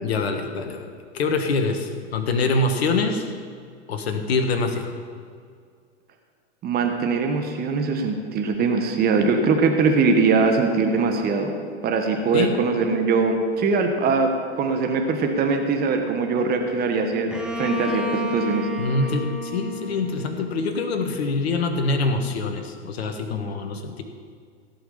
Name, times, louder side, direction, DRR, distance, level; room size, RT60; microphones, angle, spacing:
voice 1, 0.0-3.3 3.9-4.9 12.3-12.5 18.8-24.0, left 3 dB, 65° left, 6 dB, 1.6 m, -25 dB
voice 2, 6.6-11.5 11.8-14.3 14.6-18.7, right 4 dB, 30° right, 5 dB, 1.4 m, -22 dB
Bowed string instrument, 17.3-21.1, left 2 dB, ahead, 1.2 m, -31 dB
16.0 x 5.8 x 7.1 m, 2.1 s
figure-of-eight pair, 95°, 34 cm